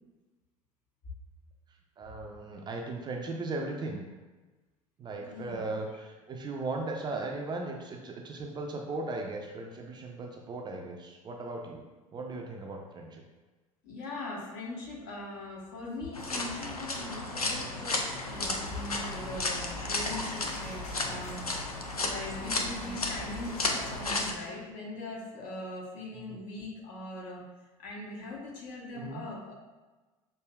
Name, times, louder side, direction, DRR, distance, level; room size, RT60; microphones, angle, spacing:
voice 1, 2.0-4.0 5.0-11.8 12.1-13.2 21.0-21.2 26.3-26.4 28.9-29.2, right 2 dB, 25° right, 1 dB, 0.4 m, -37 dB
voice 2, 5.2-5.8 13.8-27.4 27.8-29.5, left 2 dB, 55° left, -4 dB, 1.2 m, -41 dB
sound 1, 16.1-24.3, left 2 dB, 85° left, 0.4 m, -34 dB
sound 2, 18.3-24.2, left 2 dB, 40° left, 1.0 m, -45 dB
6.0 x 2.7 x 2.3 m, 1.2 s
figure-of-eight pair, 70°, 19 cm